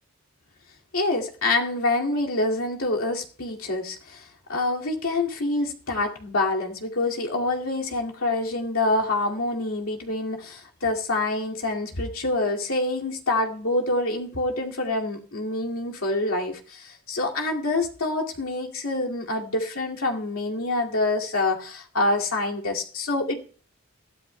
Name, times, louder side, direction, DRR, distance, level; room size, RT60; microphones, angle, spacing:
voice 1, 0.9-4.2 4.5-23.4, left 2 dB, 80° left, 0 dB, 2.3 m, -26 dB
20.5 x 13.5 x 2.2 m, 0.41 s
head